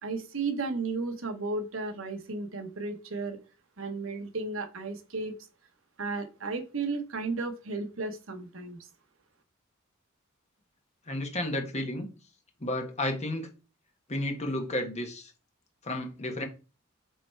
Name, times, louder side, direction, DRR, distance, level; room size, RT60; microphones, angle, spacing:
voice 1, 0.0-3.4 3.8-5.3 6.0-8.8, right 3 dB, 75° right, 1.0 m, -34 dB
voice 2, 11.1-12.1 12.6-13.5 14.1-15.3 15.8-16.4, left 1 dB, 35° left, 1.3 m, -32 dB
6.6 x 3.2 x 4.5 m
head